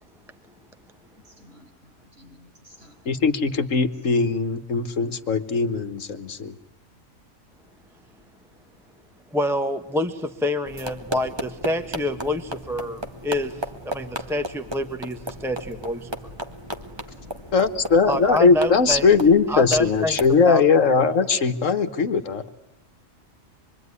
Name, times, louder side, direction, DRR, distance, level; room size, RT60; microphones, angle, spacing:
voice 1, 1.2-3.4, left 1 dB, 50° right, 5.7 m, -53 dB
voice 2, 3.1-6.5 17.5-22.5, left 4 dB, 70° left, 1.6 m, -20 dB
voice 3, 9.3-13.6 13.8-16.1 18.1-19.1 19.5-20.2 20.4-20.9, left 1 dB, ahead, 1.1 m, -27 dB
sound 1, 10.7-20.4, equal, 20° right, 1.7 m, -35 dB
26.0 x 23.5 x 9.8 m
omnidirectional pair, 1.4 m